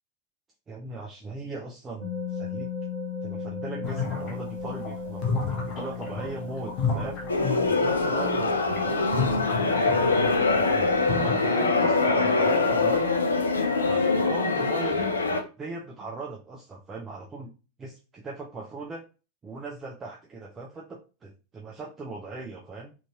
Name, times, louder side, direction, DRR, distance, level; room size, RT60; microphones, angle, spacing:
voice 1, 0.7-2.7 3.2-7.2 7.7-9.1 9.7-13.1 13.8-15.1 15.6-17.5 17.8-19.0 19.4-23.0, right 3 dB, 20° right, -3 dB, 0.5 m, -39 dB
sound 1, 2.0-14.2, left 4 dB, 50° right, 1.1 m, -38 dB
sound 2, 3.8-10.5 10.9-11.3, left 5 dB, 35° left, 0.8 m, -31 dB
sound 3, 7.3-15.4, left 3 dB, 75° left, 0.4 m, -24 dB
2.9 x 2.6 x 2.3 m, 0.34 s
figure-of-eight pair, 90°, 0 cm